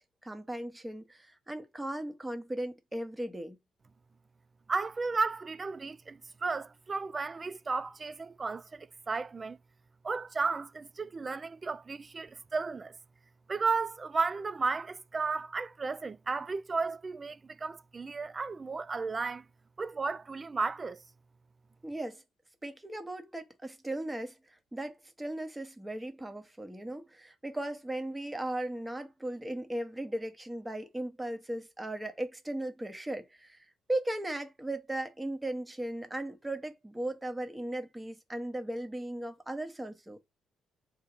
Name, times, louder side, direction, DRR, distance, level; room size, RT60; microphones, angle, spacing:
voice 1, 0.0-3.6 21.8-22.2 22.6-40.2, right 1 dB, 15° right, 1.0 m, -37 dB
voice 2, 4.7-9.6 10.0-12.9 13.5-19.4 19.8-21.0, right 4 dB, 30° right, 0.3 m, -34 dB
3.5 x 2.9 x 4.6 m
cardioid pair, 90°, 0 cm